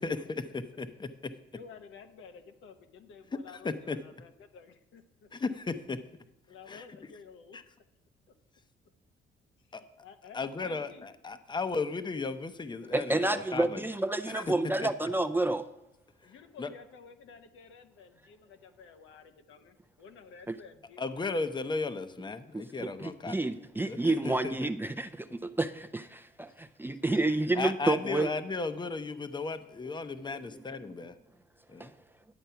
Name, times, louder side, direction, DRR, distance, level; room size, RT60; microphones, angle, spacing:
voice 1, 0.0-1.3 3.3-4.0 5.3-6.0 6.7-6.9 7.5-7.6 9.7-9.8 10.3-13.8 14.3-14.5 14.8-14.9 16.6-16.7 21.0-23.4 23.9-24.6 27.5-31.2 31.7-31.9, left 4 dB, 20° left, 11 dB, 0.8 m, -35 dB
voice 2, 1.6-3.7 4.0-5.0 6.5-7.6 10.0-11.1 16.2-21.0, left 5 dB, 80° left, 6 dB, 1.0 m, -52 dB
voice 3, 12.9-15.7 20.5-20.6 22.5-28.3 30.5-30.6 31.8-31.9, right 2 dB, 10° right, 8 dB, 0.5 m, -30 dB
10.5 x 7.9 x 5.7 m, 0.88 s
cardioid pair, 90°, 20 cm